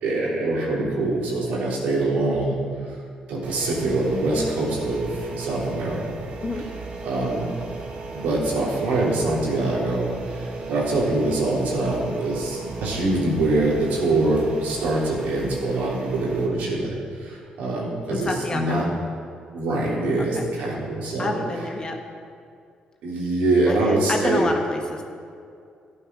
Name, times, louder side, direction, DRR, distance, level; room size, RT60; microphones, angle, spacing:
voice 1, 0.0-2.6 3.3-6.2 7.0-7.5 8.1-18.9 19.5-21.4 23.0-24.4, right 2 dB, 85° right, -4 dB, 3.6 m, -24 dB
sound 1, 3.4-16.5, right 4 dB, 70° right, 2.1 m, -36 dB
voice 2, 18.1-18.8 20.2-20.4 21.2-22.0 23.7-25.0, left 2 dB, 30° left, 2 dB, 1.8 m, -29 dB
13.5 x 9.8 x 6.2 m, 2.4 s
cardioid pair, 95°, 3 cm